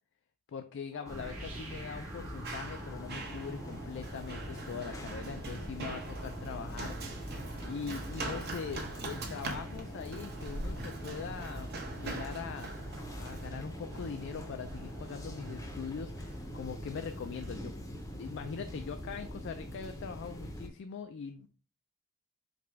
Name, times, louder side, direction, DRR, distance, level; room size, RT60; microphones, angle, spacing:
voice 1, 0.5-7.3 7.6-12.8 13.1-21.5, left 6 dB, 55° left, 7 dB, 0.3 m, -42 dB
sound 1, 0.9-19.7, right 2 dB, 75° right, 1.1 m, -54 dB
sound 2, 1.1-20.7, equal, 15° left, 0.6 m, -43 dB
Run, 1.4-18.7, right 3 dB, 45° right, 0.8 m, -44 dB
4.8 x 2.3 x 4.5 m, 0.37 s
head